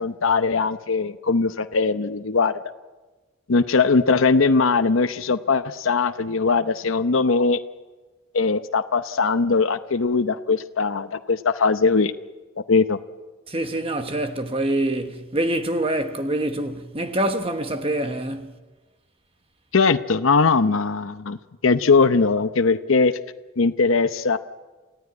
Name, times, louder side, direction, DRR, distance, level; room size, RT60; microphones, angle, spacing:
voice 1, 0.0-2.5 3.5-7.6 8.3-12.1 12.7-13.0 19.7-21.4 21.6-23.2 23.6-24.4, left 4 dB, 70° left, 0.8 m, -20 dB
voice 2, 13.5-18.5, right 1 dB, 25° right, 1.2 m, -25 dB
28.0 x 15.5 x 9.5 m
head